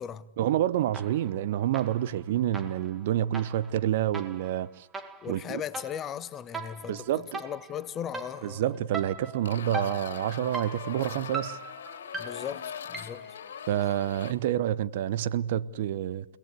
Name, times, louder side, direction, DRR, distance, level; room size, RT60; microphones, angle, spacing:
voice 1, 0.4-4.9 5.3-5.6 6.9-7.4 8.4-11.6 13.7-16.3, right 12 dB, 50° right, 0.8 m, -28 dB
sound 1, 0.9-1.4 1.7-13.4, right 3 dB, 10° right, 2.0 m, -41 dB
voice 2, 5.2-8.7 12.1-13.3, left 9 dB, 20° left, 1.1 m, -38 dB
sound 2, 9.4-14.3, left 8 dB, 60° left, 2.6 m, -41 dB
29.5 x 18.0 x 8.4 m
figure-of-eight pair, 115°, 0 cm